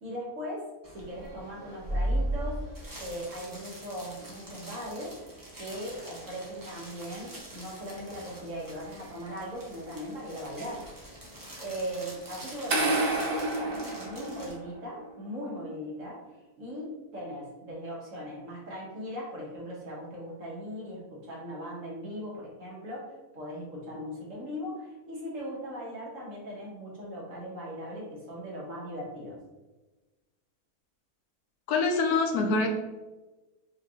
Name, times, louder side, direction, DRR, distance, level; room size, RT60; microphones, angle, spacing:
voice 1, 0.0-5.1 5.6-10.9 11.6-29.4, equal, 60° right, -5 dB, 1.4 m, -39 dB
sound 1, 0.8-14.5, right 1 dB, 20° right, 0.6 m, -39 dB
sound 2, 12.7-14.8, right 2 dB, 85° right, 1.4 m, -29 dB
voice 2, 31.7-32.7, left 3 dB, 80° left, 3 dB, 1.1 m, -25 dB
5.1 x 2.8 x 2.4 m, 1.2 s
omnidirectional pair, 1.6 m